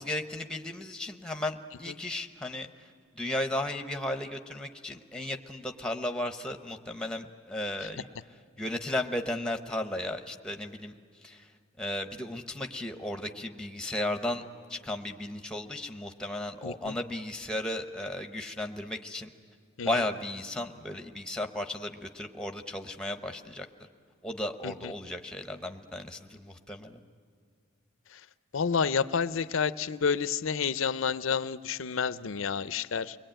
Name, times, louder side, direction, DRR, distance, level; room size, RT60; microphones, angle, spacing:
voice 1, 0.0-14.4 14.7-19.3 19.8-23.7 24.2-27.0, left 1 dB, 5° left, 6 dB, 0.9 m, -35 dB
voice 2, 16.6-16.9 19.8-19.9 24.6-24.9 28.1-28.2 28.5-33.2, left 6 dB, 80° left, 15 dB, 0.6 m, -29 dB
29.5 x 21.5 x 9.0 m, 2.3 s
head